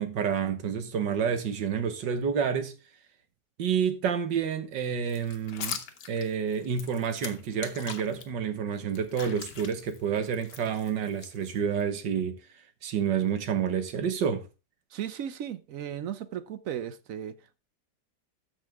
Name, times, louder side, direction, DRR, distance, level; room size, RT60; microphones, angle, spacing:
voice 1, 0.0-2.7 3.6-5.8 6.1-12.4 12.8-14.5, right 7 dB, 80° right, 1.9 m, -29 dB
sound 1, 5.1-8.3 8.7-11.8, left 7 dB, 70° left, 1.7 m, -41 dB
voice 2, 14.9-17.6, right 9 dB, 65° right, 0.9 m, -36 dB
13.5 x 5.6 x 3.5 m
omnidirectional pair, 1.9 m